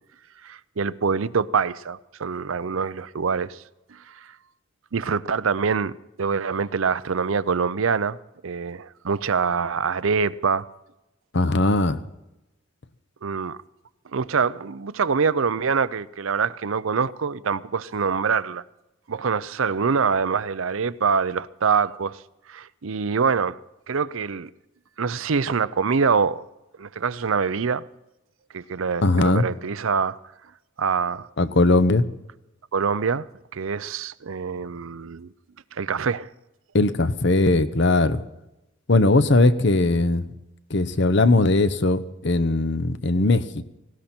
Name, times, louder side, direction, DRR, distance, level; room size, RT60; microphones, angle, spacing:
voice 1, 0.4-3.6 3.9-4.3 4.9-8.2 8.4-10.7 13.2-13.6 14.1-18.6 19.1-22.2 22.5-23.6 23.9-24.5 25.0-26.5 26.8-27.8 28.5-30.2 30.8-31.3 32.7-33.3 33.5-35.3 35.7-36.3, right 5 dB, 75° right, 0.6 m, -25 dB
voice 2, 11.3-12.0 29.0-29.4 31.4-32.0 36.7-38.2 38.9-40.3 40.7-43.6, left 2 dB, 55° left, 0.9 m, -19 dB
18.5 x 17.5 x 4.4 m
head